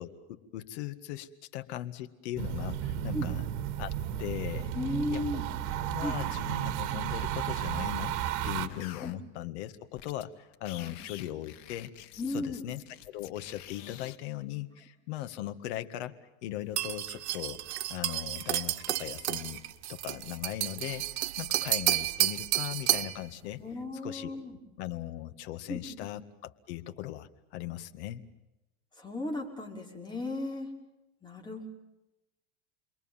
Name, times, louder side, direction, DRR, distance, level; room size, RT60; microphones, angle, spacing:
voice 1, 0.0-3.5 3.8-3.9 4.2-4.7 5.1-5.4 5.7-8.1 8.4-16.2 16.4-17.6 17.9-19.6 19.9-23.6 24.0-24.4 24.8-28.2, left 13 dB, 75° left, 9 dB, 2.0 m, -39 dB
sound 1, 2.4-8.7, right 11 dB, 60° right, 2.3 m, -33 dB
voice 2, 4.7-5.5 6.0-6.2 9.0-9.1 10.8-10.9 12.2-12.7 23.6-24.6 25.7-26.1 29.0-30.7 31.2-31.7, left 2 dB, 15° left, 1 dB, 5.5 m, -35 dB
sound 2, 8.7-9.1 10.0-10.2 10.5-14.2, left 12 dB, 55° left, 2.0 m, -48 dB
sound 3, 16.8-23.2, right 15 dB, 80° right, 1.4 m, -31 dB
29.0 x 22.5 x 7.3 m, 0.97 s
supercardioid pair, 130°, 34 cm